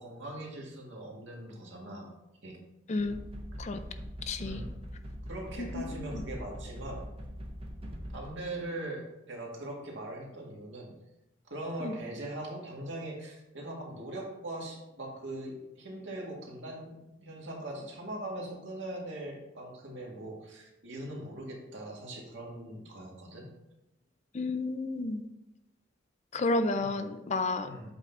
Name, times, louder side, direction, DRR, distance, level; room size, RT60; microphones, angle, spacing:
voice 1, 0.0-2.1 2.4-2.6 4.4-4.7 5.3-7.0 8.1-10.9 11.5-23.5 26.8-26.9 27.6-27.9, right 1 dB, 65° right, -2 dB, 1.9 m, -41 dB
sound 1, 3.0-8.3, equal, 30° right, 0.8 m, -42 dB
voice 2, 4.3-4.6 5.6-6.2 11.8-11.9 24.3-25.2 26.3-27.7, left 2 dB, 35° left, 9 dB, 0.4 m, -31 dB
8.1 x 3.9 x 4.3 m, 0.91 s
head